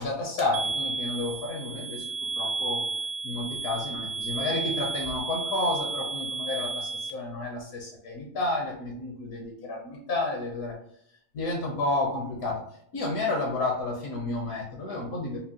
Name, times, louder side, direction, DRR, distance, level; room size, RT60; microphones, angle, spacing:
voice 1, 0.0-2.8 3.2-10.7 11.3-12.6 12.9-15.4, left 2 dB, 65° left, 0 dB, 1.2 m, -31 dB
sound 1, 0.5-7.1, right 3 dB, 65° right, 0.7 m, -32 dB
5.5 x 2.2 x 2.8 m, 0.69 s
omnidirectional pair, 1.7 m